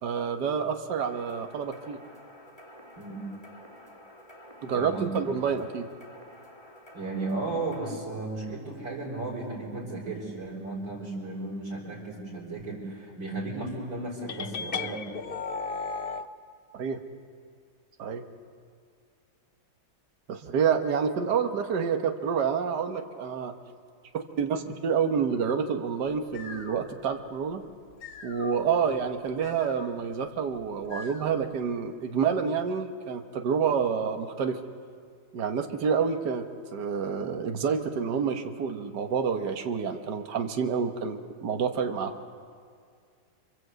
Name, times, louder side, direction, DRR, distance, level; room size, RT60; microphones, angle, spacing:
voice 1, 0.0-2.0 4.6-5.9 16.7-17.0 18.0-18.2 20.3-23.5 24.1-27.6 28.2-34.6 35.3-42.1, right 6 dB, 65° right, 5 dB, 1.8 m, -28 dB
sound 1, 1.1-7.9, equal, 20° left, 2.6 m, -50 dB
voice 2, 4.7-5.2 6.9-15.1, right 2 dB, 80° right, -7 dB, 5.6 m, -34 dB
sound 2, 14.3-16.3, left 5 dB, 55° left, 0.6 m, -34 dB
sound 3, 26.0-31.6, left 3 dB, 70° left, 2.5 m, -47 dB
29.5 x 25.0 x 8.0 m, 2.2 s
omnidirectional pair, 2.0 m